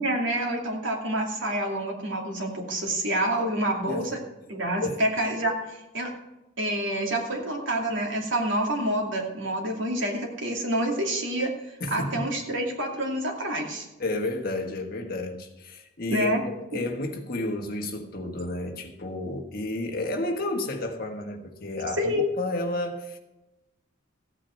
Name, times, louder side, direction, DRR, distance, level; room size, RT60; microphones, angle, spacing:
voice 1, 0.0-4.2 4.5-6.1 6.6-11.5 11.9-13.9 16.1-16.4 16.7-16.8 22.0-22.3, right 1 dB, 70° right, 0 dB, 2.6 m, -27 dB
voice 2, 11.8-12.3 14.0-23.2, left 2 dB, 45° left, 3 dB, 1.5 m, -31 dB
15.0 x 8.6 x 4.5 m, 1.0 s
head